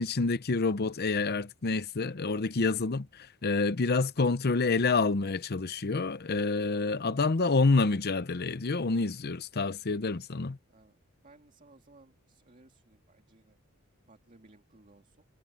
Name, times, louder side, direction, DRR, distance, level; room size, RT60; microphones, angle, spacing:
voice 1, 0.0-10.6, left 3 dB, 45° left, 0.7 m, -28 dB
voice 2, 6.7-7.3 10.7-11.0 11.2-13.6 14.1-15.2, right 2 dB, 35° right, 2.3 m, -59 dB
head